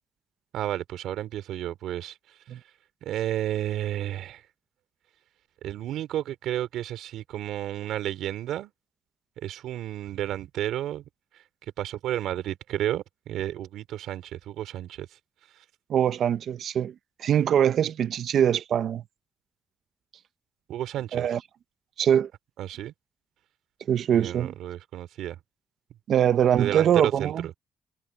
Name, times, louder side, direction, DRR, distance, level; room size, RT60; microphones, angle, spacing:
voice 1, 0.5-2.6 3.0-4.4 5.6-8.7 9.4-11.0 11.8-15.1 20.7-21.3 22.6-22.9 24.1-25.4 26.5-27.5, right 12 dB, 85° right, 3.2 m, -32 dB
voice 2, 15.9-19.0 21.1-21.4 22.0-22.3 23.9-24.5 26.1-27.5, right 9 dB, 65° right, 1.0 m, -23 dB
cardioid pair, 90°, 0 cm